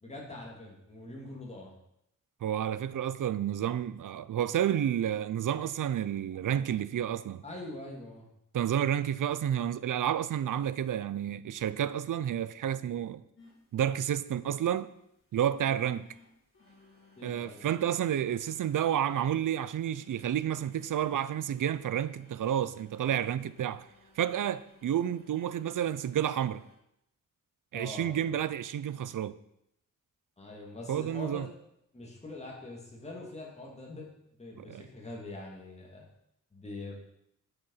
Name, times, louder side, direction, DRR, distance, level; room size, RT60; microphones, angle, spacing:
voice 1, 0.0-1.7 7.4-8.3 17.2-17.6 27.7-28.3 30.4-31.5 31.9-34.1 34.4-36.1 36.5-36.9, left 2 dB, 20° left, 2.7 m, -43 dB
voice 2, 2.4-7.4 8.5-13.2 13.7-14.9 15.3-16.1 17.2-23.9 24.2-26.6 27.7-29.4 30.9-31.5 34.6-34.8, right 10 dB, 75° right, 0.5 m, -30 dB
sound 1, 13.4-26.7, left 3 dB, 40° left, 4.5 m, -61 dB
11.5 x 6.9 x 5.7 m
wide cardioid pair, 160°, 32 cm